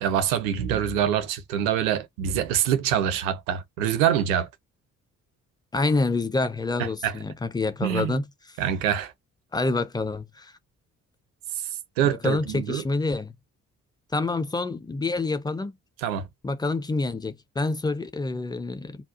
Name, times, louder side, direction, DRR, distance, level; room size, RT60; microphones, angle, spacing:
voice 1, 0.0-4.5 6.8-7.2 7.8-8.2 8.6-9.1 12.0-12.8 16.0-16.3, right 9 dB, 70° right, 0.7 m, -25 dB
voice 2, 5.7-8.2 9.5-10.5 12.0-13.3 14.1-15.7 16.4-19.0, left 3 dB, 10° left, 0.5 m, -27 dB
3.6 x 2.3 x 2.5 m
figure-of-eight pair, 45°, 41 cm